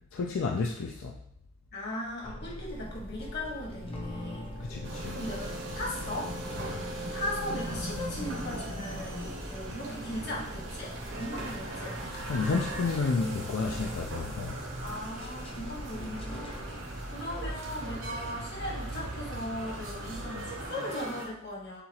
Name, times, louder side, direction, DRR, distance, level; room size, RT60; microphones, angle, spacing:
voice 1, 0.1-1.2 4.6-5.2 12.2-14.6, left 4 dB, 80° left, 1 dB, 0.4 m, -31 dB
voice 2, 1.7-4.5 5.1-6.3 7.1-12.0 14.8-16.5 17.1-21.8, left 1 dB, 55° left, -3 dB, 1.4 m, -38 dB
sound 1, 2.2-16.8, equal, 30° left, 0.7 m, -42 dB
sound 2, 2.6-20.7, right 1 dB, 30° right, 0.5 m, -44 dB
sound 3, 4.8-21.3, right 1 dB, 70° right, 1.0 m, -41 dB
6.9 x 2.4 x 2.9 m, 0.68 s
head